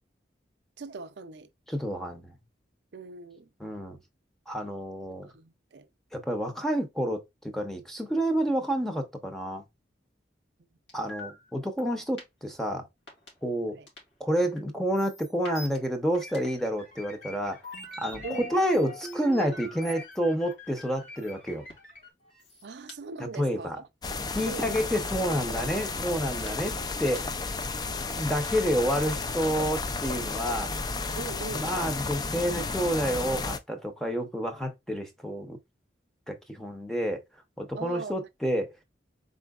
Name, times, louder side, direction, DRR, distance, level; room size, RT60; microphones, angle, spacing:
voice 1, 0.8-1.5 2.9-3.5 5.3-5.9 13.7-13.9 18.2-18.5 22.6-23.8 24.4-24.8 31.2-31.7 37.8-38.3, right 4 dB, 70° right, 0.5 m, -40 dB
voice 2, 1.7-2.3 3.6-4.0 4.5-5.3 6.1-9.6 10.9-12.9 13.4-13.8 14.2-17.6 18.0-21.7 23.4-23.8 24.3-27.3 28.1-30.7 31.5-35.6 36.3-37.2 37.6-38.7, equal, ahead, 0.7 m, -29 dB
sound 1, 10.9-11.5 11.8-11.9 12.2-12.3 13.1-13.3 13.9-14.0 14.4-14.6 14.9-15.8 16.1-16.5 17.1-20.2 20.5-20.6 20.8-20.9 21.2-21.3 21.7-21.8 22.2-22.9 24.4-24.5 25.3-25.4 26.2-26.5 27.2-27.3 27.5-27.6 28.4-28.5, left 1 dB, 85° left, 2.5 m, -42 dB
sound 2, 16.1-22.1, left 2 dB, 40° left, 2.2 m, -48 dB
sound 3, 24.0-33.6, left 3 dB, 20° left, 0.3 m, -33 dB
4.3 x 3.7 x 2.3 m
head